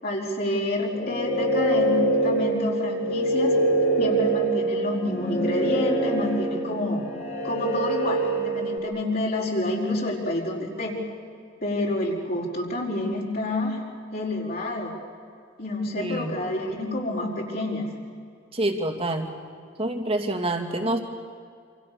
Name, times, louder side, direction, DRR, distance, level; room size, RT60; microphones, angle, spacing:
voice 1, 0.0-3.6 4.0-7.1 7.4-11.0 11.6-13.8 14.1-14.9 15.6-17.9, left 1 dB, 50° left, -3 dB, 5.0 m, -28 dB
sound 1, 0.9-8.8, right 1 dB, 35° left, 2.7 m, -24 dB
voice 2, 16.0-16.3 18.5-19.3 19.8-21.0, right 1 dB, 30° right, 3 dB, 2.6 m, -27 dB
28.0 x 27.5 x 6.9 m, 2.3 s
head